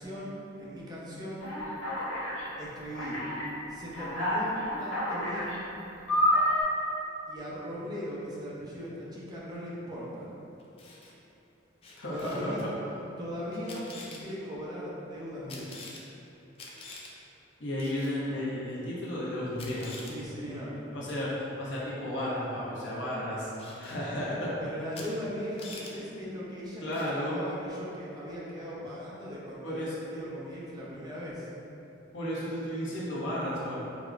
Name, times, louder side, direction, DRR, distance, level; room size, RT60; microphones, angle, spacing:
voice 1, 0.0-1.5 2.6-3.2 3.7-5.7 7.3-10.3 12.1-12.6 13.2-16.0 20.0-20.8 24.6-26.8 27.1-31.5, equal, 20° right, -7 dB, 0.6 m, -39 dB
Alarm, 1.4-2.4 2.9-3.4 3.9-5.6 6.1-6.6, equal, 90° left, 1.1 m, -28 dB
Camera, 10.6-11.1 11.8-12.7 13.5-14.2 15.5-16.0 16.6-17.1 17.8-18.1 19.1-19.2 19.6-20.1 21.1-21.3 23.6-24.0 24.9-25.1 25.4-25.9 26.9-27.2, left 3 dB, 30° left, 0.4 m, -46 dB
voice 2, 12.0-12.7 17.6-19.9 20.9-23.5 23.8-24.5 26.8-27.4 29.6-29.9 32.1-33.8, left 1 dB, 65° left, -7 dB, 0.8 m, -33 dB
4.8 x 2.1 x 2.4 m, 3.0 s
head